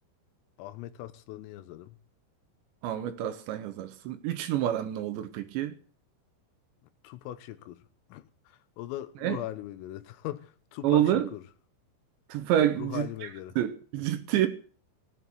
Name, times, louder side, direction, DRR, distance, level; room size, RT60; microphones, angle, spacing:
voice 1, 0.6-2.0 7.0-7.8 8.1-11.4 12.8-13.6, left 14 dB, 85° left, 3.7 m, -40 dB
voice 2, 2.8-5.7 9.2-9.4 10.8-11.3 12.3-13.3 13.6-14.5, right 11 dB, 75° right, 3.1 m, -28 dB
17.0 x 10.5 x 7.8 m
omnidirectional pair, 5.9 m